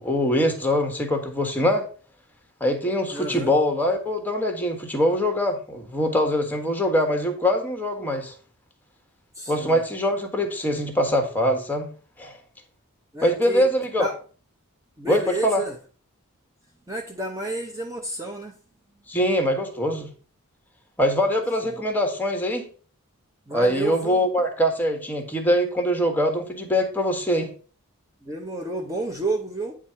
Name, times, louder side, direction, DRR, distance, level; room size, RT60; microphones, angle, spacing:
voice 1, 0.0-1.8 2.6-8.3 9.5-11.9 12.2-12.4 13.2-14.1 15.1-15.6 19.1-20.1 21.0-22.6 23.5-27.5, equal, 10° left, 1.4 m, -23 dB
voice 2, 3.1-3.5 9.3-9.8 13.1-13.6 14.0-14.1 15.0-15.8 16.9-18.5 21.6-21.8 23.5-24.2 28.2-29.7, right 2 dB, 15° right, 0.8 m, -30 dB
9.3 x 3.7 x 5.6 m
head